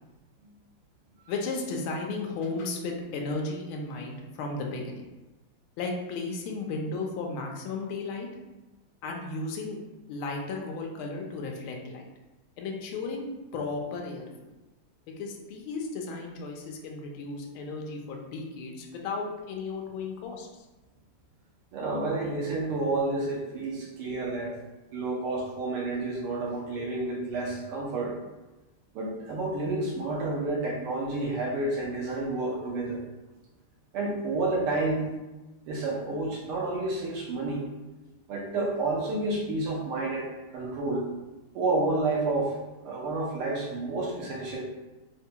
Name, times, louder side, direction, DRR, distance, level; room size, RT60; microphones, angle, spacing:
voice 1, 1.3-5.0 5.8-8.3 9.0-9.8 10.1-12.1 12.6-13.2 13.5-14.2 15.2-20.5, left 3 dB, 75° left, 1 dB, 1.4 m, -34 dB
voice 2, 21.7-24.6 24.9-28.2 28.9-33.0 33.9-35.1 35.6-37.7 38.3-41.1 41.5-44.6, right 2 dB, 85° right, -2 dB, 1.7 m, -30 dB
4.2 x 2.2 x 2.7 m, 1.1 s
omnidirectional pair, 2.4 m